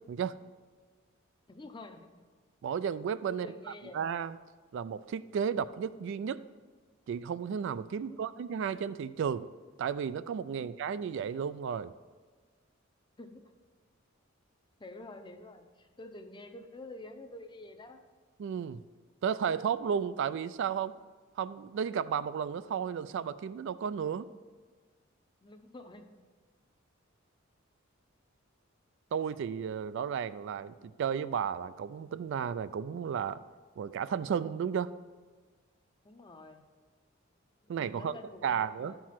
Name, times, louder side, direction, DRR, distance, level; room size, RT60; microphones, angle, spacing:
voice 1, 1.5-2.1 3.3-4.0 8.0-8.2 10.6-10.7 13.2-13.4 14.8-18.0 25.4-26.1 36.0-36.6 37.7-39.0, left 2 dB, 25° left, 7 dB, 0.6 m, -48 dB
voice 2, 2.6-3.5 3.9-4.4 4.7-6.4 7.1-9.5 9.8-11.9 18.4-18.8 19.2-21.0 21.4-24.3 29.1-33.4 33.8-34.9 37.7-38.1 38.4-38.9, right 7 dB, 60° right, 14 dB, 0.3 m, -33 dB
11.5 x 4.6 x 5.8 m, 1.5 s
head